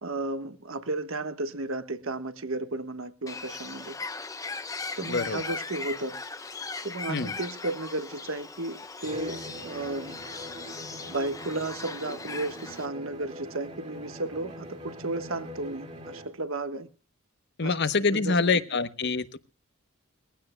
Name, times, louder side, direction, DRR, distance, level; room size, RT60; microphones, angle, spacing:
voice 1, 0.0-4.0 5.0-6.1 6.8-10.2 11.1-16.9 17.6-18.6, right 2 dB, 70° right, 1.3 m, -34 dB
Bird, 3.3-12.9, left 4 dB, 15° left, 0.8 m, -39 dB
voice 2, 5.1-5.4 7.1-7.3 17.6-19.4, left 4 dB, 55° left, 0.9 m, -26 dB
Bowed string instrument, 9.0-16.4, equal, 35° right, 2.5 m, -42 dB
21.5 x 16.0 x 2.2 m
head